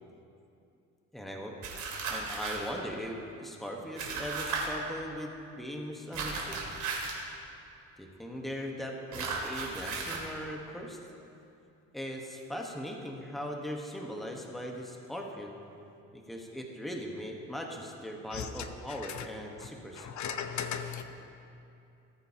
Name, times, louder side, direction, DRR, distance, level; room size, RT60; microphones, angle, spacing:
voice 1, 1.1-1.6 2.1-6.6 8.0-11.0 11.9-15.6 16.1-20.1, equal, ahead, 0 dB, 1.2 m, -39 dB
sound 1, 1.6-2.7 4.0-4.6 6.1-7.2 9.1-10.2, right 4 dB, 75° right, 2.1 m, -35 dB
voice 2, 20.0-21.0, left 8 dB, 70° left, 8 dB, 0.8 m, -35 dB
18.5 x 8.8 x 2.9 m, 2.7 s
cardioid pair, 90°, 30 cm